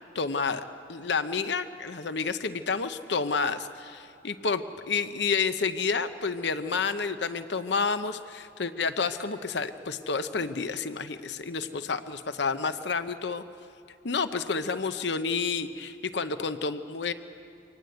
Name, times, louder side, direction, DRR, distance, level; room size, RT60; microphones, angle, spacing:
voice 1, 0.1-13.4 14.0-17.1, left 5 dB, 65° left, 10 dB, 0.8 m, -30 dB
24.5 x 19.0 x 7.9 m, 2.5 s
head